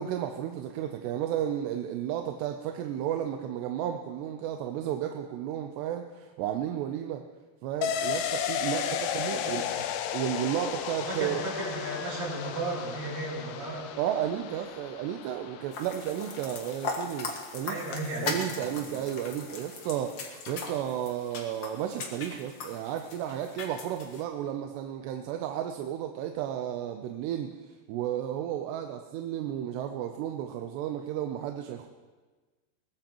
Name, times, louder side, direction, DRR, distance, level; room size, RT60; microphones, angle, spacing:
voice 1, 0.0-7.2 7.6-8.9 9.1-9.7 10.1-11.4 14.0-17.8 18.2-31.9, right 10 dB, 90° right, 5 dB, 2.9 m, -33 dB
sound 1, 7.8-17.2 17.5-17.6, left 9 dB, 85° left, 2.9 m, -34 dB
voice 2, 9.2-9.7 11.0-13.9 17.7-18.7, right 2 dB, 70° right, -4 dB, 6.6 m, -35 dB
sound 2, 15.7-24.2, left 4 dB, 60° left, 1.6 m, -39 dB
22.5 x 19.0 x 3.0 m, 1.3 s
omnidirectional pair, 4.8 m